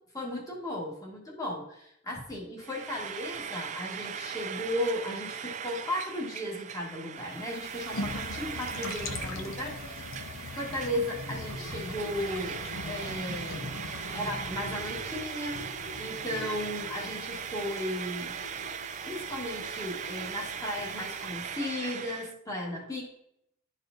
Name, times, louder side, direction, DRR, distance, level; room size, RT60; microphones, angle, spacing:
voice 1, 0.1-10.1 10.6-13.6 14.1-15.6 16.0-18.3 19.1-23.0, left 1 dB, 15° left, -3 dB, 1.5 m, -35 dB
Frying (food), 2.6-22.3, right 7 dB, 35° right, 0.3 m, -39 dB
sound 1, 7.3-21.6, left 2 dB, 75° left, 0.7 m, -41 dB
12.0 x 4.1 x 2.6 m, 0.75 s
head